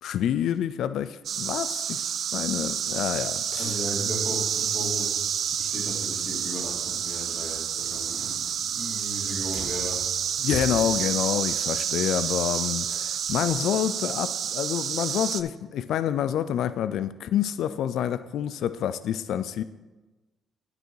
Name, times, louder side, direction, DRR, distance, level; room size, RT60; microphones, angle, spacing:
voice 1, 0.0-2.0 2.3-3.8 10.4-19.6, left 10 dB, 75° left, 13 dB, 0.3 m, -28 dB
sound 1, 1.2-15.4, right 8 dB, 65° right, 0.4 m, -29 dB
voice 2, 3.6-10.7, left 1 dB, 40° left, -2 dB, 2.8 m, -36 dB
9.2 x 6.7 x 4.7 m, 1.2 s
cardioid pair, 90°, 0 cm